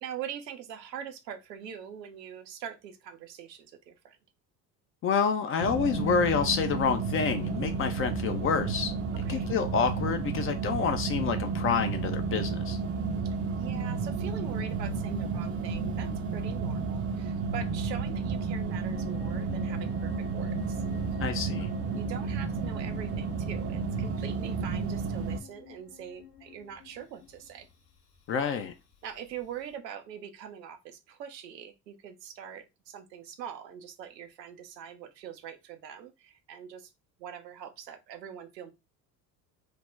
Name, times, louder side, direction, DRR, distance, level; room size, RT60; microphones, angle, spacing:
voice 1, 0.0-4.2 9.1-9.5 13.2-20.8 21.3-21.4 21.9-27.7 29.0-36.9 37.2-38.7, right 8 dB, 85° right, 0.6 m, -43 dB
voice 2, 5.0-8.9 9.3-12.8 21.2-21.7 28.3-28.7, left 6 dB, 30° left, 0.4 m, -28 dB
sound 1, 5.6-25.4, right 4 dB, 30° right, 0.5 m, -32 dB
sound 2, 18.8-29.7, left 8 dB, 55° left, 0.9 m, -50 dB
2.4 x 2.1 x 3.2 m
figure-of-eight pair, 60°, 48 cm